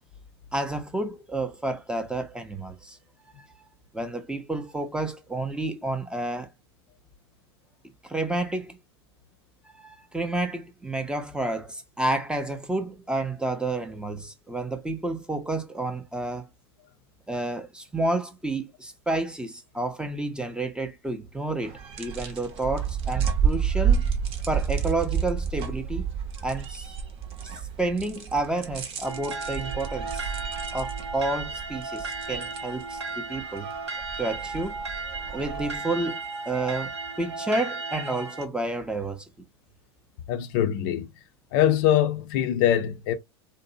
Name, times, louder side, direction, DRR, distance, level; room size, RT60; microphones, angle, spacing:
voice 1, 0.5-3.0 3.9-6.5 8.0-8.8 9.7-16.5 17.3-24.1 24.5-26.1 26.4-26.9 27.8-30.3 30.7-33.7 34.2-34.8 35.3-36.2 36.5-39.2, right 2 dB, 5° right, 0.5 m, -30 dB
sound 1, 21.6-35.8, right 7 dB, 45° right, 0.7 m, -30 dB
sound 2, 29.0-38.5, right 3 dB, 85° right, 0.7 m, -35 dB
voice 2, 40.3-41.1 41.5-43.1, left 11 dB, 55° left, 0.4 m, -23 dB
2.6 x 2.0 x 2.5 m
hypercardioid pair, 90°, 14 cm